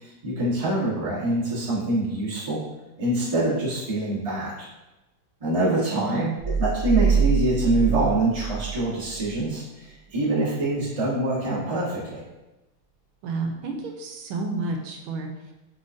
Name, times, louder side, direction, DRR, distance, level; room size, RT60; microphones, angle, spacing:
voice 1, 0.0-2.6 3.0-4.5 5.4-6.3 6.6-9.9 10.1-12.2, right 2 dB, 20° right, -8 dB, 1.0 m, -25 dB
voice 2, 5.6-6.3 13.2-15.3, right 3 dB, 80° right, 2 dB, 1.4 m, -30 dB
sound 1, 6.4-9.4, right 6 dB, 60° left, 1.4 m, -24 dB
5.5 x 3.7 x 2.5 m, 1.0 s
omnidirectional pair, 2.3 m